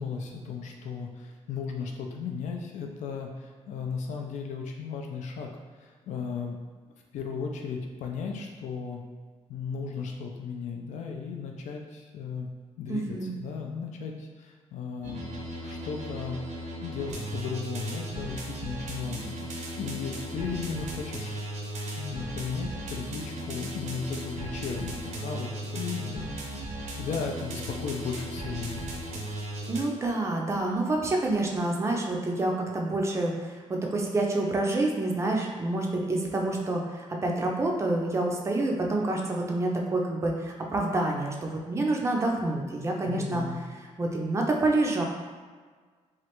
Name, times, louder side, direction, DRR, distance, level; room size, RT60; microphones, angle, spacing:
voice 1, 0.0-5.5 5.8-6.6 7.1-9.0 9.5-12.5 12.8-15.3 15.6-16.4 16.8-21.3 21.9-28.9 43.1-43.6, left 5 dB, 85° left, 2 dB, 0.4 m, -35 dB
voice 2, 12.9-13.3 29.7-43.4 44.0-45.0, right 2 dB, 25° right, 0 dB, 0.4 m, -28 dB
sound 1, 15.0-29.8, right 1 dB, 80° right, 0.6 m, -36 dB
3.1 x 2.4 x 2.9 m, 1.5 s
wide cardioid pair, 170°, 12 cm